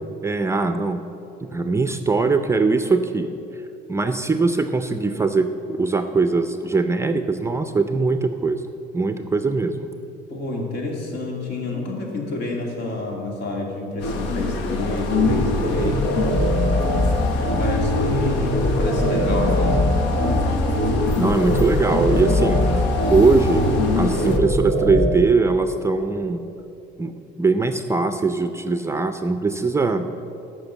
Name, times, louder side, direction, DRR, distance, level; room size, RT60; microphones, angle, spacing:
voice 1, 0.2-1.0 1.4-3.3 3.9-8.6 8.9-9.9 21.1-22.6 23.1-23.6 23.9-26.4 27.0-30.1, right 3 dB, 15° right, 8 dB, 0.4 m, -21 dB
voice 2, 10.3-16.3 17.3-19.8, left 2 dB, 65° left, 0 dB, 2.6 m, -29 dB
sound 1, 14.0-24.4, left 4 dB, 85° left, 1.1 m, -27 dB
sound 2, 15.1-25.1, left 1 dB, 45° left, 2.6 m, -21 dB
12.0 x 6.3 x 8.2 m, 2.9 s
cardioid pair, 140°, 19 cm